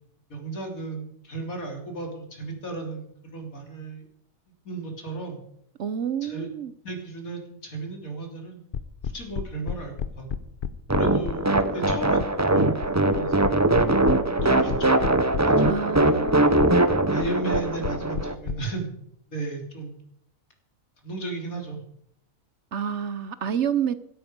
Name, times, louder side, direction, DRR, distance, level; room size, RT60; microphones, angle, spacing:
voice 1, 0.3-4.1 4.6-5.4 6.2-6.5 6.8-8.6 9.0-10.5 11.0-13.3 14.3-15.0 15.4-16.3 17.1-18.9 19.3-20.0 21.0-21.8, right 3 dB, 80° left, 3.8 m, -35 dB
voice 2, 5.8-6.7 15.6-16.4 22.7-23.9, right 8 dB, 60° right, 1.0 m, -28 dB
sound 1, 8.7-18.5, left 7 dB, 45° left, 0.8 m, -31 dB
sound 2, 10.9-18.3, right 2 dB, 15° right, 0.7 m, -21 dB
16.0 x 14.0 x 5.2 m
omnidirectional pair, 1.5 m